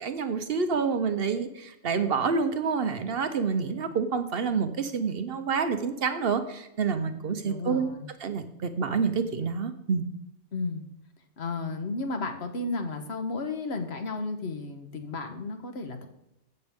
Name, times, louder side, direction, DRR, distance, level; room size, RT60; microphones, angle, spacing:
voice 1, 0.0-7.9 8.2-10.1, right 5 dB, 60° right, 9 dB, 1.0 m, -28 dB
voice 2, 7.4-8.1 10.5-10.8 11.4-16.1, left 3 dB, 65° left, 6 dB, 1.4 m, -33 dB
15.0 x 6.5 x 3.5 m, 0.88 s
omnidirectional pair, 1.2 m